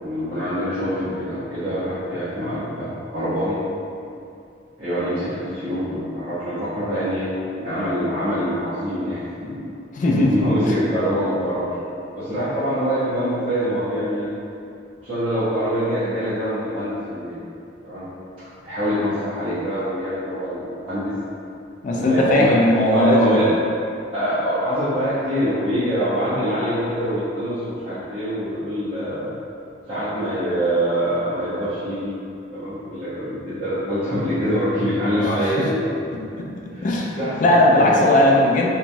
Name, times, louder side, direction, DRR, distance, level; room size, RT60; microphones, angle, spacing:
voice 1, 0.0-3.6 4.8-7.3 7.6-9.7 10.3-11.7 12.1-14.3 15.0-17.4 17.8-18.1 18.6-21.1 21.9-22.6 22.9-23.6 24.1-29.3 29.9-32.2 32.5-35.8 36.7-38.0, equal, 30° right, -16 dB, 0.6 m, -24 dB
voice 2, 9.9-10.5 21.8-23.5 36.4-38.7, left 1 dB, 45° left, -1 dB, 0.3 m, -18 dB
2.9 x 2.2 x 2.5 m, 2.6 s
head